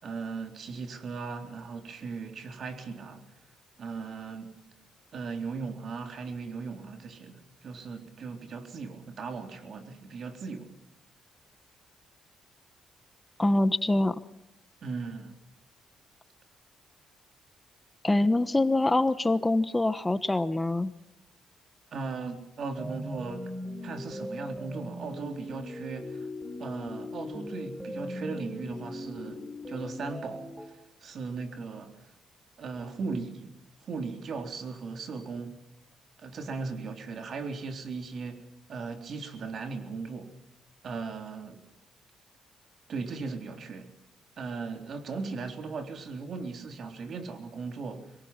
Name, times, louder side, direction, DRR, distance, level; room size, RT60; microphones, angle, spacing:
voice 1, 0.0-3.2 3.8-4.5 5.1-10.7 14.8-15.3 21.9-23.4 23.8-26.3 26.6-32.1 32.6-33.5 33.8-35.6 36.2-38.4 38.7-40.3 40.8-41.6 42.9-43.9 44.4-48.2, right 4 dB, 55° right, 5 dB, 3.7 m, -38 dB
voice 2, 13.4-14.2 18.0-20.9, left 2 dB, 15° left, 12 dB, 1.2 m, -25 dB
sound 1, 22.8-30.7, left 1 dB, 15° right, 5.8 m, -39 dB
26.0 x 23.0 x 6.0 m, 0.86 s
cardioid pair, 90°, 0 cm